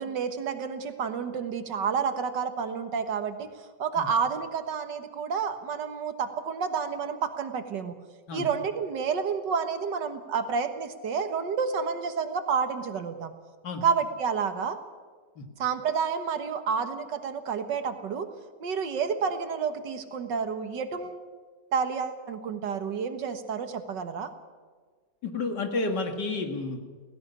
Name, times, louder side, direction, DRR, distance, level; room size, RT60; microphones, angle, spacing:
voice 1, 0.0-3.5 3.8-8.0 8.3-13.3 13.8-14.8 15.6-18.3 18.6-21.2 21.7-24.3, right 6 dB, 85° right, 8 dB, 2.0 m, -30 dB
voice 2, 25.2-26.8, left 3 dB, 75° left, 5 dB, 2.5 m, -30 dB
16.5 x 16.5 x 9.9 m, 1.5 s
omnidirectional pair, 1.8 m